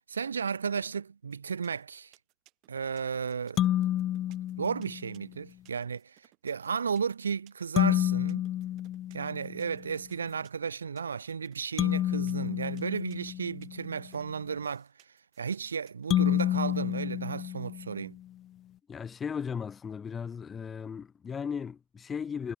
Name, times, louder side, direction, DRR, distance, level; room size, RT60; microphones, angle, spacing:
voice 1, 0.1-2.1 2.7-3.6 4.6-6.2 6.4-8.4 9.1-14.9 15.4-18.1, right 6 dB, 90° right, 0.5 m, -34 dB
sound 1, 1.3-17.0, right 22 dB, 65° right, 7.8 m, -62 dB
sound 2, 3.6-5.2 7.8-9.8 11.8-13.9 16.1-18.2, left 12 dB, 55° left, 0.4 m, -29 dB
voice 2, 18.9-22.6, left 6 dB, 35° left, 3.1 m, -36 dB
figure-of-eight pair, 60°, 0 cm